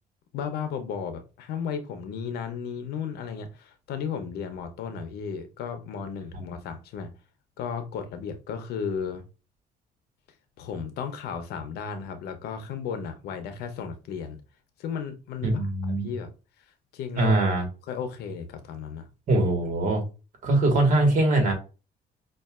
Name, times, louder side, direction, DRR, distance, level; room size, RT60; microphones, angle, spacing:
voice 1, 0.3-7.1 7.6-9.2 10.6-14.4 14.8-15.7 16.0-16.3 16.9-17.4 17.9-19.1, left 6 dB, 85° left, 0.8 m, -34 dB
voice 2, 15.4-16.1 17.1-17.6 19.3-20.0 20.4-21.5, right 2 dB, 50° right, 1.6 m, -22 dB
5.4 x 2.5 x 2.4 m
cardioid pair, 115°, 16 cm